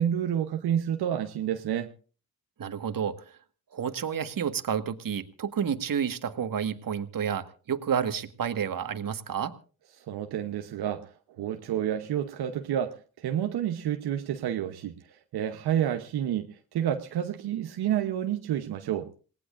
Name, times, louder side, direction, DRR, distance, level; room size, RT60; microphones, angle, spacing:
voice 1, 0.0-1.9 10.0-19.1, right 10 dB, 85° right, 6 dB, 1.0 m, -29 dB
voice 2, 2.6-3.4 3.7-9.5, right 8 dB, 60° right, 9 dB, 1.6 m, -30 dB
27.0 x 18.5 x 2.5 m, 0.38 s
cardioid pair, 55°, 38 cm